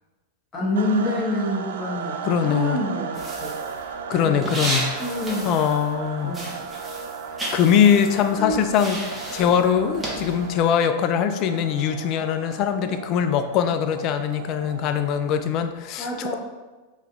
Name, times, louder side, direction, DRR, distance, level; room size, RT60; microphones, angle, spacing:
voice 1, 0.5-3.5 4.2-4.5 5.0-5.4 6.2-6.6 8.3-8.6 16.0-16.4, left 1 dB, 20° left, -5 dB, 1.4 m, -27 dB
sound 1, 0.8-15.5, right 5 dB, 75° right, 0.4 m, -36 dB
voice 2, 2.2-2.8 4.1-4.9 5.4-6.4 7.5-16.4, left 8 dB, 45° left, 9 dB, 0.4 m, -22 dB
sound 2, 3.1-6.0 6.3-10.6, right 1 dB, 15° right, 1.2 m, -33 dB
5.1 x 3.0 x 2.5 m, 1.2 s
hypercardioid pair, 100°, 0 cm